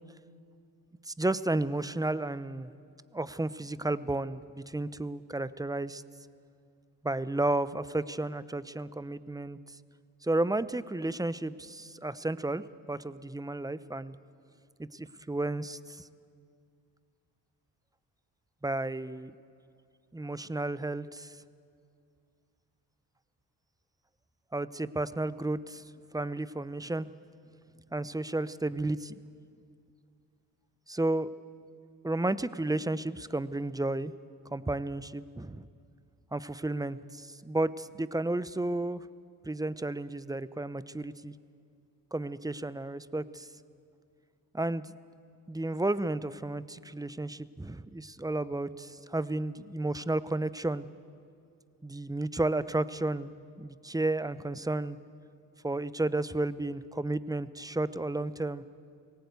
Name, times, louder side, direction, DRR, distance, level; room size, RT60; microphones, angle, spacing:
voice 1, 1.1-2.7 3.1-6.0 7.0-9.8 10.2-14.2 14.9-16.1 18.6-19.3 20.1-21.4 24.5-25.8 26.1-27.1 27.9-29.1 30.9-31.3 32.0-34.1 34.5-35.7 36.3-39.1 39.4-41.3 42.1-43.5 44.5-44.9 45.5-50.8 51.8-53.3 53.6-55.0 55.6-58.6, right 2 dB, 10° right, 16 dB, 0.6 m, -32 dB
19.0 x 18.0 x 8.1 m, 2.3 s
supercardioid pair, 50°, 42 cm